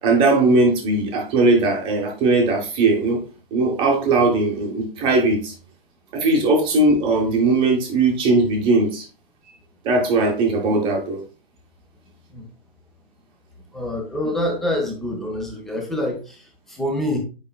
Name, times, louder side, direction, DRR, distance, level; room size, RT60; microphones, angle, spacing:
voice 1, 0.0-3.2 3.5-5.5 6.1-9.1 9.8-11.2, right 2 dB, 15° right, 1 dB, 0.9 m, -19 dB
voice 2, 13.7-17.2, left 1 dB, ahead, 2 dB, 0.5 m, -26 dB
8.3 x 5.0 x 2.2 m, 0.33 s
figure-of-eight pair, 135°, 31 cm